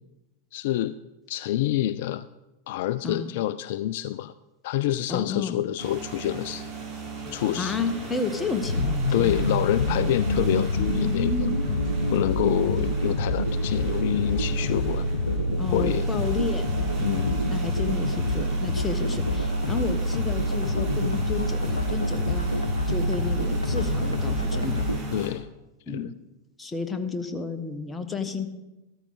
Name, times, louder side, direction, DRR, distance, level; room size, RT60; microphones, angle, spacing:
voice 1, 0.5-0.9 1.3-2.3 2.7-4.3 4.6-6.6 7.3-7.8 9.1-11.5 12.1-15.1 15.5-16.1 17.0-17.4 25.1-25.5 25.9-26.1, left 13 dB, 50° left, 15 dB, 0.3 m, -27 dB
voice 2, 5.1-5.6 7.6-9.5 10.9-11.8 15.6-22.5 22.9-24.8 25.9-26.1 26.6-28.5, left 5 dB, 15° left, 7 dB, 1.2 m, -31 dB
sound 1, 5.8-25.3, right 2 dB, 30° right, 4.1 m, -37 dB
sound 2, 8.6-25.0, left 1 dB, 80° left, 0.7 m, -26 dB
13.5 x 13.0 x 4.0 m, 1.0 s
figure-of-eight pair, 90°, 0 cm